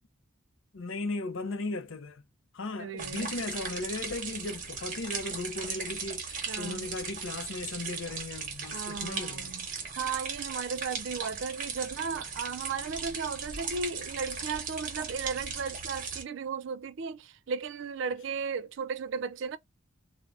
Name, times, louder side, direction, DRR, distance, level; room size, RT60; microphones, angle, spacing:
voice 1, 0.7-2.2 2.5-9.5, left 3 dB, 65° left, 0.5 m, -36 dB
voice 2, 2.8-3.4 6.5-6.9 8.7-9.7 10.0-19.6, right 5 dB, 60° right, 0.3 m, -35 dB
sound 1, 3.0-16.2, right 5 dB, 40° right, 0.8 m, -38 dB
2.5 x 2.1 x 3.3 m
head